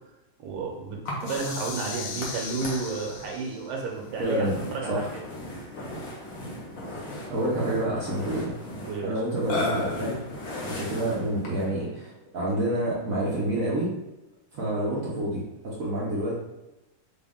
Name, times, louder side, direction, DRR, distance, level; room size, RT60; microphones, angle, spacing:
voice 1, 0.4-5.2 5.6-5.7 8.8-9.1, right 4 dB, 85° right, 0 dB, 1.7 m, -32 dB
Burping eructation, 1.0-11.7, left 1 dB, 55° left, 1.2 m, -37 dB
sound 1, 1.2-3.8, left 5 dB, 80° left, 1.5 m, -38 dB
voice 2, 4.2-4.6 4.9-5.1 6.9-8.5 9.0-10.2 10.7-13.9 14.5-16.3, right 1 dB, 55° right, -6 dB, 0.9 m, -28 dB
5.0 x 2.4 x 3.5 m, 0.98 s
omnidirectional pair, 2.4 m